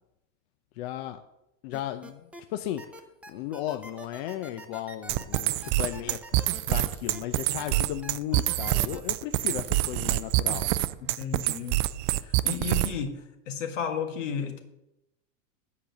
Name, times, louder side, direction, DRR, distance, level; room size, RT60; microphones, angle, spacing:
voice 1, 0.8-1.2 1.6-2.8 3.3-6.4 6.7-10.7, left 12 dB, 60° left, 8 dB, 0.6 m, -35 dB
sound 1, 1.7-2.4 2.8-7.2 7.6-9.0, right 1 dB, 5° right, 0.7 m, -45 dB
sound 2, 5.1-13.1, right 17 dB, 45° right, 0.4 m, -26 dB
voice 2, 11.2-11.8 12.2-13.2 13.5-14.6, left 7 dB, 85° left, 4 dB, 1.8 m, -33 dB
8.6 x 5.0 x 7.0 m, 0.89 s
supercardioid pair, 135°, 36 cm